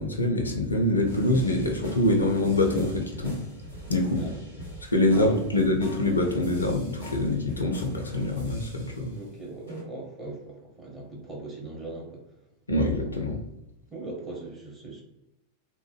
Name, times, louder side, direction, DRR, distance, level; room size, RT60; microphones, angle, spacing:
voice 1, 0.0-3.4 3.9-4.2 4.9-9.1 12.7-13.4, left 1 dB, 75° left, 2 dB, 0.4 m, -25 dB
sound 1, 1.0-9.2 9.7-9.8, right 1 dB, 90° right, 1.3 m, -42 dB
voice 2, 4.1-4.6 5.1-5.6 9.1-12.2 13.9-15.0, right 2 dB, 20° right, -3 dB, 0.9 m, -39 dB
2.9 x 2.1 x 3.0 m, 0.94 s
figure-of-eight pair, 90°, 0 cm